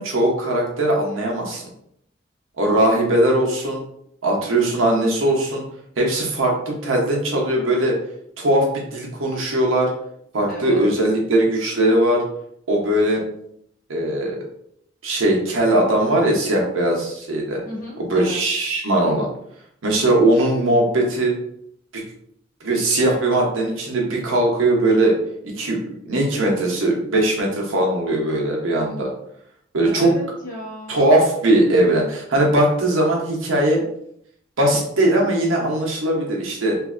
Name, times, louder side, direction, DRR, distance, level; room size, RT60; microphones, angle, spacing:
voice 1, 0.0-1.6 2.6-3.8 4.2-5.6 6.0-8.0 8.4-9.9 10.3-12.2 12.7-13.2 13.9-14.4 15.0-17.6 18.0-19.3 19.8-21.4 21.9-22.0 22.6-25.2 25.4-29.1 29.7-30.1 30.9-33.8 34.6-36.8, right 1 dB, 85° right, -1 dB, 0.8 m, -19 dB
voice 2, 10.5-10.8 17.6-18.4 29.8-31.0, equal, 45° left, -5 dB, 1.1 m, -34 dB
3.1 x 2.6 x 2.5 m, 0.71 s
head